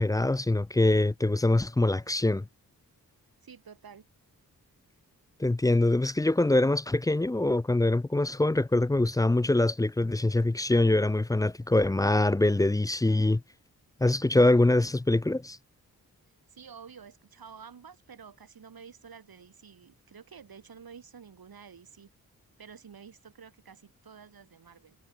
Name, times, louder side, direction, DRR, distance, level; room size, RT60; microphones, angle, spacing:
voice 1, 0.0-2.4 5.4-13.4 14.0-15.6, left 2 dB, 10° left, 0.4 m, -24 dB
voice 2, 3.4-4.1 16.5-22.1 22.6-25.0, right 6 dB, 75° right, 4.7 m, -50 dB
cardioid pair, 40°, 36 cm